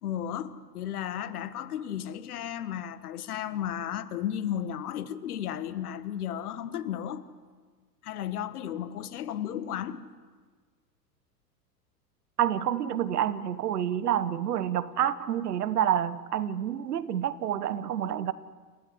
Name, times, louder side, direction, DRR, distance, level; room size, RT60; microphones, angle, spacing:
voice 1, 0.0-7.2 8.0-10.0, left 10 dB, 60° left, 1.7 m, -34 dB
voice 2, 12.4-18.3, right 10 dB, 65° right, 1.4 m, -28 dB
29.5 x 16.5 x 9.7 m
figure-of-eight pair, 95°, 50 cm